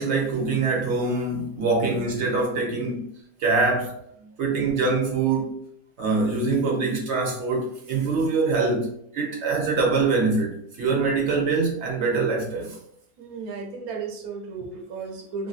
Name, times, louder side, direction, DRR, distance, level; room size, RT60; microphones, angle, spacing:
voice 1, 0.0-3.1 3.4-4.0 4.4-5.5 6.0-12.8, right 3 dB, 55° right, 1.0 m, -24 dB
voice 2, 13.2-15.5, right 4 dB, 90° right, 1.1 m, -34 dB
3.0 x 2.6 x 2.3 m
omnidirectional pair, 1.5 m